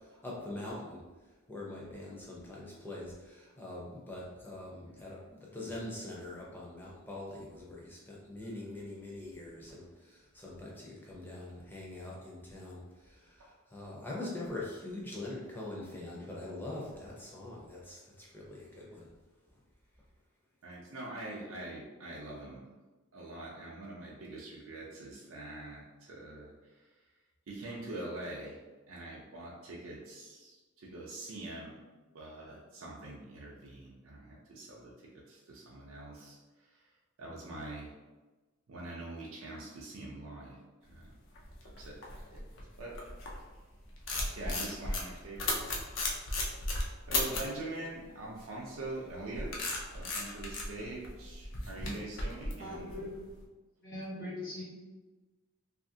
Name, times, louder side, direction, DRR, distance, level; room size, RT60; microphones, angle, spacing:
voice 1, 0.2-1.0 1.5-19.1, left 2 dB, 10° left, -5 dB, 0.5 m, -43 dB
voice 2, 20.6-22.7 23.1-26.9 27.5-28.6 28.9-31.7 32.1-34.9 35.3-36.9 37.2-37.9 38.7-40.6 40.9-41.1 41.8-42.5 42.8-42.9 44.4-45.9 47.1-52.9, right 2 dB, 70° right, -4 dB, 0.5 m, -44 dB
sound 1, 41.1-43.5 43.8-47.6 48.8-53.3, left 2 dB, 60° left, 0.5 m, -35 dB
voice 3, 52.6-53.1 53.8-54.6, left 1 dB, 45° left, -7 dB, 1.2 m, -40 dB
2.7 x 2.4 x 2.7 m, 1.2 s
head